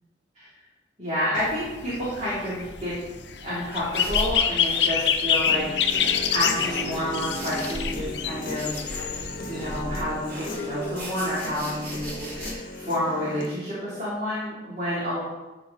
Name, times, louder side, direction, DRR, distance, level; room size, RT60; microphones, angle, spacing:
voice 1, 1.0-2.9 3.4-5.6 5.9-8.7 9.0-15.2, equal, 40° right, -11 dB, 3.5 m, -30 dB
sound 1, 1.4-9.8, left 8 dB, 70° left, 0.8 m, -26 dB
sound 2, 3.7-12.5, equal, 60° right, 3.2 m, -38 dB
Human voice / Guitar, 5.4-13.5, left 1 dB, 50° left, 1.1 m, -36 dB
13.5 x 5.0 x 4.2 m, 1.1 s
head